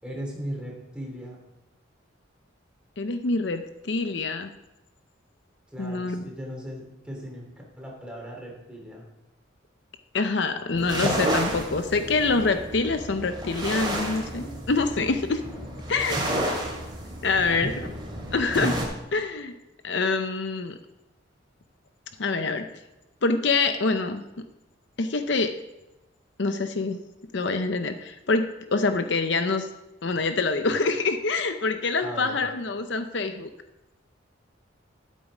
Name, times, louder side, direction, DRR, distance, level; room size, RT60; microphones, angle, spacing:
voice 1, 0.0-1.4 5.7-7.5 7.8-9.0 17.4-17.9 32.0-32.4, equal, 5° right, -2 dB, 3.2 m, -37 dB
voice 2, 3.0-4.5 5.8-6.2 10.1-15.4 15.9-16.2 17.2-17.7 18.3-18.8 19.1-19.5 19.8-20.8 22.2-22.7 23.2-24.2 25.0-25.5 26.4-27.0 27.3-29.7 30.0-33.5, left 3 dB, 60° left, 8 dB, 0.7 m, -25 dB
sound 1, 10.7-18.8, right 1 dB, 25° right, 2.7 m, -31 dB
12.0 x 8.2 x 4.9 m, 0.99 s
head